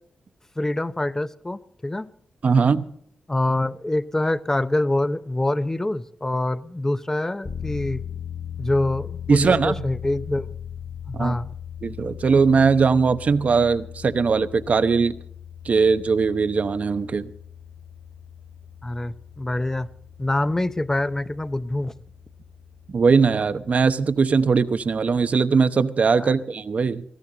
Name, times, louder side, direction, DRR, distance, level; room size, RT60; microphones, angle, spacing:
voice 1, 0.6-2.1 3.3-8.0 8.6-10.5 11.1-11.5 18.8-19.9 20.2-21.9 26.2-26.3, left 1 dB, 15° left, 13 dB, 0.7 m, -25 dB
voice 2, 2.4-2.9 9.3-9.7 11.1-11.4 11.8-15.1 15.6-17.3 22.9-27.0, right 5 dB, 55° right, 12 dB, 0.9 m, -20 dB
sound 1, 7.4-23.8, left 8 dB, 35° left, 1.3 m, -39 dB
19.0 x 15.0 x 3.9 m, 0.65 s
cardioid pair, 80°, 3 cm